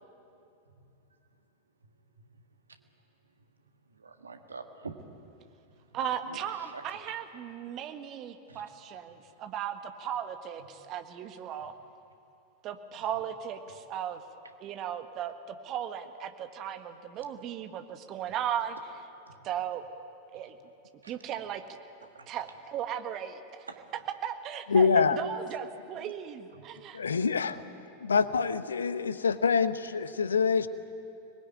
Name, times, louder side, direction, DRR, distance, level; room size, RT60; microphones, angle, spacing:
voice 1, 4.0-5.0 6.3-6.4 6.7-6.8 8.5-8.6 19.3-19.5 21.0-21.1 22.1-22.3 23.7-23.8 26.6-26.7 27.1-27.2 28.1-28.2, right 4 dB, 75° right, 6 dB, 1.8 m, -44 dB
voice 2, 5.9-11.7 12.6-14.2 14.6-19.0 19.4-19.8 20.3-20.6 21.1-21.6 22.3-27.0, right 9 dB, 35° right, 7 dB, 1.6 m, -36 dB
voice 3, 24.7-25.2 26.9-27.6 28.0-30.7, left 5 dB, 70° left, 14 dB, 0.9 m, -25 dB
25.0 x 20.0 x 9.1 m, 2.7 s
figure-of-eight pair, 90°, 0 cm